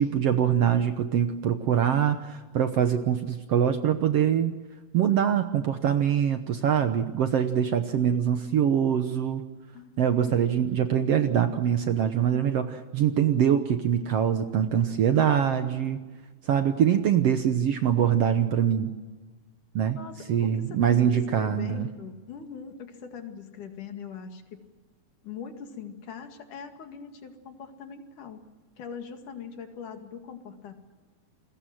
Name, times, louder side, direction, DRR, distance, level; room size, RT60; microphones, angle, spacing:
voice 1, 0.0-4.6 4.9-9.4 10.0-16.0 16.4-18.9 19.7-20.0 20.3-21.9, right 9 dB, 65° right, 8 dB, 1.7 m, -24 dB
voice 2, 9.7-10.4 15.4-15.9 20.0-24.7 25.2-28.4 28.8-30.7, left 6 dB, 70° left, 6 dB, 3.6 m, -41 dB
29.0 x 21.5 x 7.7 m, 1.3 s
omnidirectional pair, 3.8 m